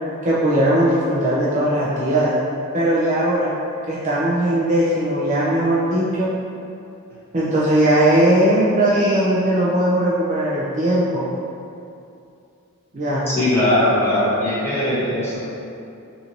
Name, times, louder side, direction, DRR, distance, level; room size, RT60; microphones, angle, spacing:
voice 1, 0.2-2.4 2.7-3.5 3.9-6.3 7.3-11.3 12.9-13.3, right 1 dB, 30° right, -8 dB, 0.4 m, -19 dB
voice 2, 13.3-15.4, left 1 dB, 10° left, -11 dB, 0.7 m, -20 dB
2.9 x 2.6 x 2.5 m, 2.6 s
head